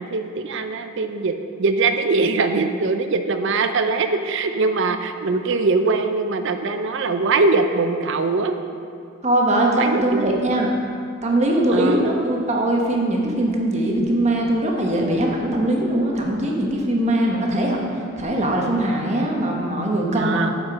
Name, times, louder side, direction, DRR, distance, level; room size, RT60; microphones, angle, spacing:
voice 1, 0.0-8.6 9.8-10.6 11.7-12.1 20.1-20.5, right 3 dB, 60° right, 7 dB, 0.5 m, -22 dB
voice 2, 9.2-10.7 11.2-17.8 18.2-20.4, right 1 dB, 35° right, 0 dB, 1.1 m, -21 dB
8.5 x 5.1 x 6.2 m, 2.4 s
head